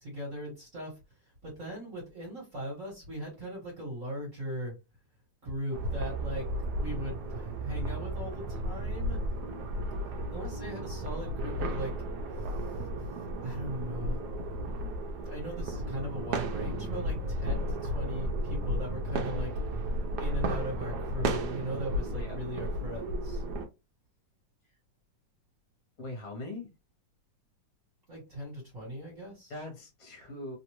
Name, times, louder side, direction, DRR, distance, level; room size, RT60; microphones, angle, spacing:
voice 1, 0.0-0.9 1.4-4.7 5.4-6.4 6.7-9.2 10.3-11.9 13.4-14.2 15.2-19.5 20.2-23.4 28.1-29.5, equal, 40° right, -3 dB, 1.5 m, -38 dB
sound 1, 5.7-23.7, right 1 dB, 70° right, 1.0 m, -34 dB
voice 2, 26.0-26.7 29.5-30.6, left 2 dB, 50° left, 1 dB, 1.5 m, -41 dB
3.4 x 2.5 x 2.9 m, 0.26 s
omnidirectional pair, 2.3 m